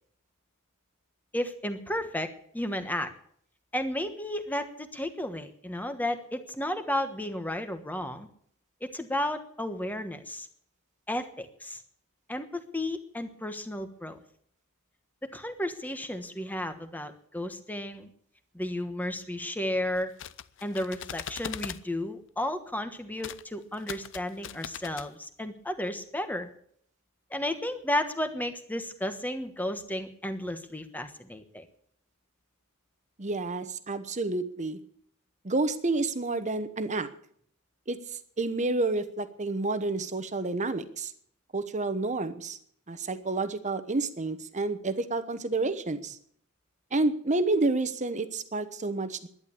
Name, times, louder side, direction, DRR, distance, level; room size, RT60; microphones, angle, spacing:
voice 1, 1.3-3.1 3.7-8.3 8.8-10.5 11.1-11.8 12.3-14.2 15.2-18.1 18.5-20.1 20.6-26.5 27.3-31.7, left 1 dB, 10° left, 8 dB, 1.2 m, -33 dB
sound 1, 20.0-21.8 23.2-23.4 23.7-25.1, left 9 dB, 60° left, 0.6 m, -40 dB
voice 2, 33.2-34.8 35.4-37.1 37.9-38.0 38.4-41.1 41.5-42.6 42.9-46.2 46.9-49.3, right 2 dB, 35° right, 11 dB, 1.0 m, -29 dB
11.5 x 10.5 x 8.5 m, 0.63 s
head